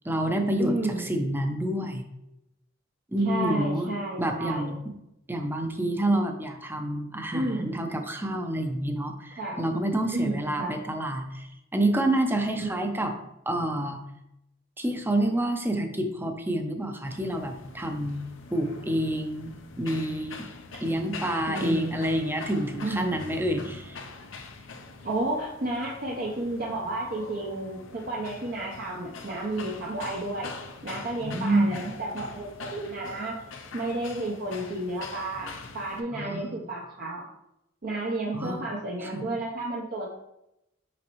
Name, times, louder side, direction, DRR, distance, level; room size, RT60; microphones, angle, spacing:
voice 1, 0.0-2.0 3.1-3.9 4.2-4.8 5.3-11.5 11.7-13.1 13.5-14.0 14.8-20.4 20.8-24.0 31.2-31.7 36.1-36.5 38.3-38.6 39.0-39.2, right 1 dB, 10° right, 5 dB, 0.6 m, -28 dB
voice 2, 0.6-1.1 3.2-4.8 7.3-7.7 9.4-9.6 10.1-10.7 12.6-12.9 21.5-22.0 22.8-23.2 25.0-30.5 30.8-33.4 33.7-37.3 37.8-40.1, right 2 dB, 45° right, -3 dB, 0.7 m, -32 dB
sound 1, 17.0-36.0, left 4 dB, 70° left, 0.6 m, -44 dB
6.0 x 5.2 x 3.0 m, 0.85 s
head